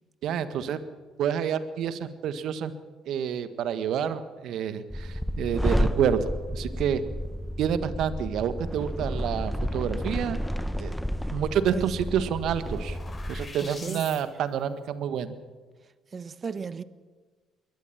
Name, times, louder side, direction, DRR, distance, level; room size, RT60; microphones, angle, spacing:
voice 1, 0.2-0.8 1.2-2.7 3.0-7.0 7.6-10.4 10.8-10.9 11.3-13.0 13.3-15.3, right 8 dB, 65° right, 1.5 m, -28 dB
sound 1, 4.9-13.5, equal, 5° left, 1.2 m, -31 dB
sound 2, 11.7-14.2, left 3 dB, 35° left, 7.6 m, -44 dB
voice 2, 13.8-14.3 16.1-16.8, right 5 dB, 40° right, 1.2 m, -35 dB
22.0 x 19.0 x 7.3 m
hypercardioid pair, 50°, 0 cm